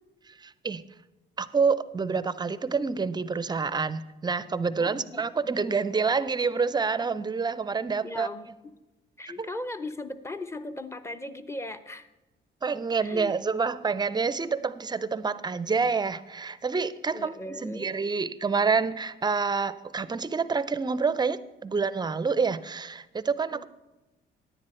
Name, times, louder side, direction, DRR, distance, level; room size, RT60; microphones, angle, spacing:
voice 1, 0.4-0.8 1.4-8.3 9.4-9.5 12.6-23.6, right 5 dB, 20° right, 15 dB, 0.4 m, -27 dB
voice 2, 4.8-5.3 8.0-8.7 9.2-12.1 13.0-13.4 17.1-17.9 23.5-23.6, left 2 dB, 15° left, 12 dB, 0.6 m, -38 dB
10.0 x 9.6 x 4.4 m, 1.0 s
cardioid pair, 90°, 20 cm